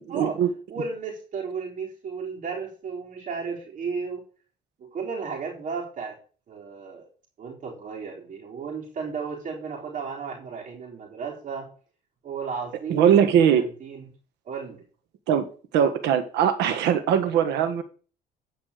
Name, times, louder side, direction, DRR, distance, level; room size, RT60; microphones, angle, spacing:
voice 1, 0.1-0.5 12.9-13.6 15.3-15.5 15.7-17.8, right 9 dB, 85° right, 10 dB, 1.5 m, -21 dB
voice 2, 0.7-4.2 4.8-6.2 6.5-7.1 7.4-11.7 12.2-14.1 14.4-14.8, right 5 dB, 50° right, -2 dB, 3.9 m, -34 dB
9.7 x 5.4 x 6.6 m, 0.39 s
cardioid pair, 110°, 17 cm